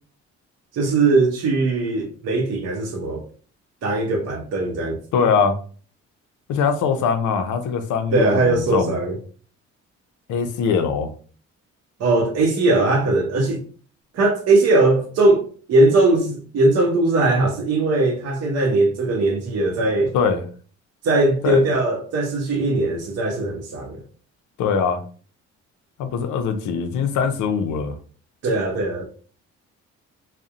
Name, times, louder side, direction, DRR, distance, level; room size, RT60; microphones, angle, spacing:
voice 1, 0.7-3.3 3.8-5.0 8.1-9.1 12.0-13.6 14.1-20.1 21.0-24.0 28.4-29.0, right 2 dB, 55° right, 0.6 m, -19 dB
voice 2, 5.1-5.6 6.5-9.0 10.3-11.1 20.1-20.4 21.4-21.6 24.6-25.0 26.0-27.9, left 6 dB, 75° left, 0.5 m, -22 dB
2.6 x 2.0 x 2.4 m
cardioid pair, 90°, 30 cm